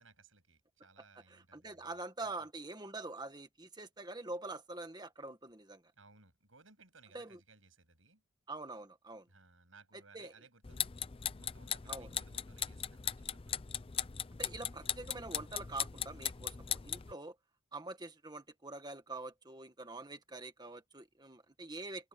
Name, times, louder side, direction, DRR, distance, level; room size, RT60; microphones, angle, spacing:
voice 1, 0.0-2.5 6.0-8.2 9.3-10.9 11.4-13.6, right 4 dB, 80° right, 7.9 m, -62 dB
voice 2, 1.3-5.8 7.1-7.4 8.5-9.2 10.1-10.3 11.9-12.1 14.4-17.3 17.7-22.1, right 2 dB, 20° right, 1.6 m, -45 dB
sound 1, 10.6-17.1, left 9 dB, 25° left, 0.5 m, -39 dB
open air
head